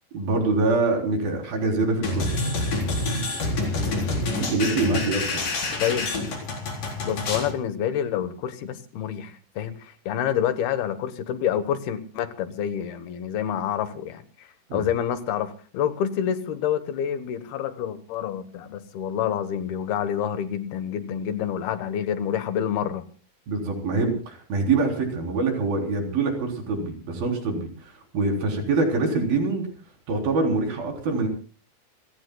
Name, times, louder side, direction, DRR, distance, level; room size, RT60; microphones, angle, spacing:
voice 1, 0.1-2.3 4.4-5.2 14.7-14.8 23.5-29.7 30.1-31.3, right 3 dB, 70° right, 2 dB, 5.6 m, -24 dB
sound 1, 2.0-7.5, left 2 dB, 60° left, 5.9 m, -27 dB
voice 2, 5.8-6.1 7.0-23.0, left 9 dB, 90° left, 11 dB, 3.2 m, -28 dB
29.0 x 16.5 x 2.3 m, 0.37 s
omnidirectional pair, 4.3 m